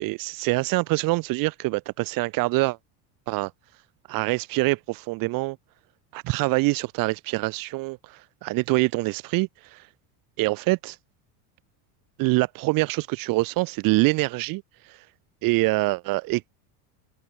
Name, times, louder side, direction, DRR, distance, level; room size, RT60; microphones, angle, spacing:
voice 1, 0.0-2.8 3.3-3.5 4.1-5.6 6.1-9.8 10.4-11.0 12.2-15.0 15.4-16.5, right 22 dB, 50° right, 1.0 m, -25 dB
supercardioid pair, 145°, 45 cm